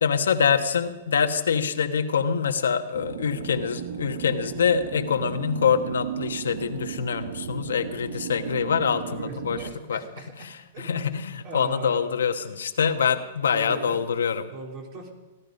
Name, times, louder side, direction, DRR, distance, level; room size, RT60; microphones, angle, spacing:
voice 1, 0.0-10.0 10.4-14.5, left 7 dB, 85° left, 7 dB, 1.2 m, -25 dB
sound 1, 2.9-9.7, right 8 dB, 65° right, 1.0 m, -35 dB
voice 2, 9.0-12.1 13.5-14.0 14.5-15.1, right 3 dB, 40° right, 1 dB, 3.6 m, -40 dB
17.0 x 12.5 x 5.3 m, 1.1 s
hypercardioid pair, 130°, 0 cm